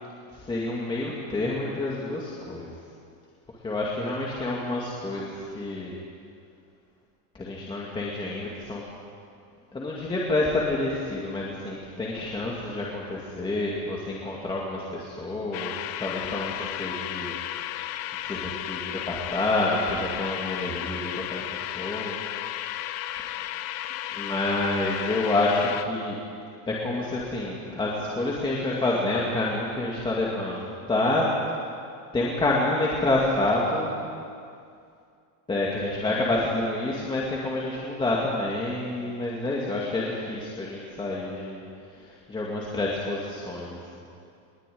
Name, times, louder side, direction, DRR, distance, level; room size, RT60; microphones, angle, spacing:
voice 1, 0.3-2.7 3.6-6.0 7.3-8.8 9.7-15.7 16.0-17.3 18.2-22.2 24.1-26.2 26.7-31.3 32.1-33.9 35.5-41.6 42.0-43.8, left 2 dB, 10° left, -4 dB, 2.2 m, -28 dB
sound 1, 15.5-25.8, left 13 dB, 30° left, 0.6 m, -34 dB
21.5 x 21.5 x 9.4 m, 2.4 s
cardioid pair, 180°, 49 cm